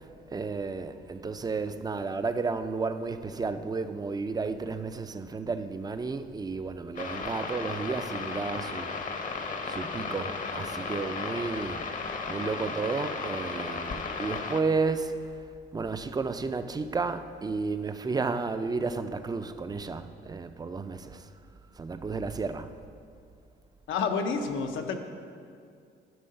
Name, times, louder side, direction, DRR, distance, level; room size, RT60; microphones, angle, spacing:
voice 1, 0.3-9.0 9.7-11.9 12.2-15.2 15.7-21.3 21.8-22.7, right 4 dB, 20° right, 0.4 m, -32 dB
sound 1, 7.0-14.6, left 4 dB, 40° left, 0.8 m, -35 dB
voice 2, 23.9-25.0, left 5 dB, 80° left, 0.7 m, -29 dB
11.0 x 3.8 x 5.4 m
cardioid pair, 90°, 20 cm